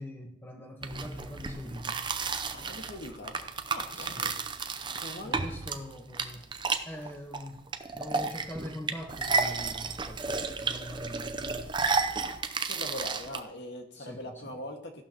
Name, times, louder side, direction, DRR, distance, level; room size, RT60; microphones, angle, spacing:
voice 1, 0.0-2.0 3.9-4.4 5.2-6.5 6.8-11.8 14.0-14.5, equal, 10° left, 2 dB, 1.2 m, -43 dB
sound 1, 0.8-13.4, right 4 dB, 25° right, 0.7 m, -32 dB
voice 2, 2.5-3.4 3.7-4.3 4.9-5.4 12.7-15.0, left 1 dB, 55° left, 2 dB, 1.8 m, -41 dB
15.0 x 12.0 x 3.0 m, 0.78 s
head